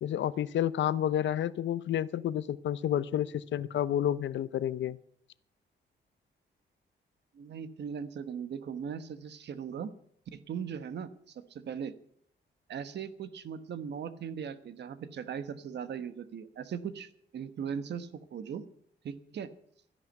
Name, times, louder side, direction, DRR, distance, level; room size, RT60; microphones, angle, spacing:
voice 1, 0.0-5.0, left 10 dB, 90° left, 17 dB, 0.7 m, -30 dB
voice 2, 7.3-9.9 10.3-11.9 12.7-18.6 19.0-19.5, right 7 dB, 70° right, 12 dB, 1.2 m, -39 dB
13.5 x 10.5 x 8.0 m, 0.65 s
wide cardioid pair, 165°, 19 cm